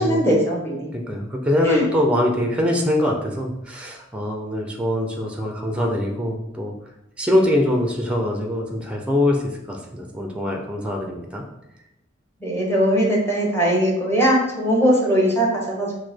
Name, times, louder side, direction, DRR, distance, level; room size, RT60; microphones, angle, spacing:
voice 1, 0.0-0.9 1.6-1.8 12.4-15.9, equal, 10° left, -3 dB, 1.0 m, -20 dB
voice 2, 0.9-6.7 7.2-9.4 9.7-11.4, left 1 dB, 5° right, 2 dB, 0.5 m, -23 dB
4.7 x 2.1 x 4.3 m, 0.85 s
head